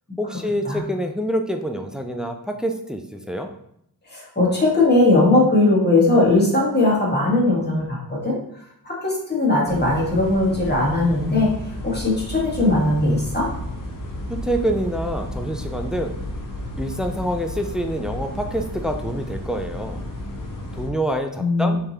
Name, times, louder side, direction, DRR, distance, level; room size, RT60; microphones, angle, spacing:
voice 1, 0.2-3.5 14.3-16.2 16.8-20.0 20.7-21.8, equal, ahead, 5 dB, 0.4 m, -26 dB
voice 2, 4.1-8.4 8.8-11.5 11.8-13.5 21.4-21.8, left 2 dB, 25° left, -4 dB, 1.4 m, -19 dB
sound 1, 9.6-20.9, left 1 dB, 55° left, 1.0 m, -32 dB
5.5 x 3.4 x 2.8 m, 0.72 s
wide cardioid pair, 110°, 39 cm